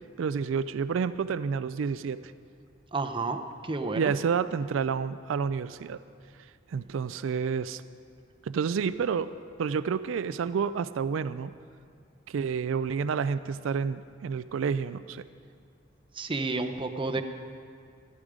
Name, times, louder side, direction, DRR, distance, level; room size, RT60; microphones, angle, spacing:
voice 1, 0.2-2.3 4.0-6.0 6.7-7.8 8.4-9.3 9.6-11.5 12.3-15.2, right 6 dB, 80° right, 14 dB, 0.4 m, -29 dB
voice 2, 2.9-4.1 16.1-17.2, right 3 dB, 25° right, 7 dB, 0.7 m, -31 dB
14.0 x 13.5 x 5.0 m, 2.3 s
head